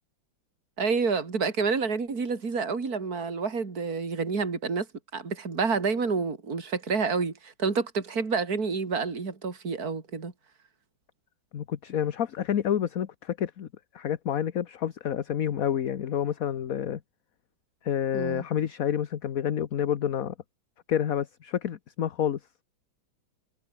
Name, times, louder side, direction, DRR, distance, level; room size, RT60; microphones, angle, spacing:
voice 1, 0.8-4.9 5.1-10.3 18.1-18.4, right 5 dB, 50° right, 3.6 m, -28 dB
voice 2, 11.5-13.7 13.9-17.0 17.8-20.3 20.9-22.4, left 9 dB, 50° left, 1.4 m, -28 dB
omnidirectional pair, 2.0 m